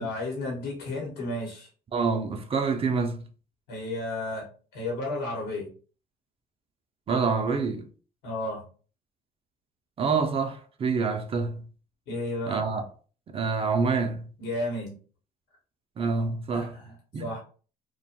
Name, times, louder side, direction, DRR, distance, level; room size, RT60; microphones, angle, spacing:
voice 1, 0.0-1.7 3.7-4.5 4.7-5.7 8.2-8.6 12.1-12.6 14.4-15.0 16.5-16.9 17.2-17.4, left 2 dB, 80° left, 1.0 m, -32 dB
voice 2, 1.9-3.2 7.1-7.9 10.0-11.7 12.5-12.9 13.3-14.3 16.0-16.8 17.1-17.2, right 4 dB, 35° right, 0.4 m, -27 dB
2.5 x 2.2 x 2.7 m
cardioid pair, 110°, 17 cm